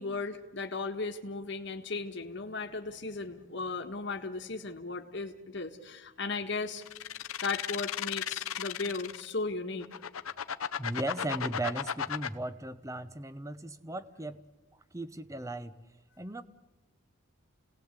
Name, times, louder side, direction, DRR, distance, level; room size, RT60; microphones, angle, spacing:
voice 1, 0.0-6.8 7.4-9.9, left 3 dB, 55° left, 4 dB, 1.5 m, -36 dB
sound 1, 6.8-9.3 9.8-12.3, left 8 dB, 90° left, 0.9 m, -35 dB
voice 2, 10.8-14.4 14.9-15.8 16.2-16.4, right 2 dB, 15° right, 13 dB, 0.8 m, -37 dB
29.5 x 18.0 x 8.2 m, 1.2 s
head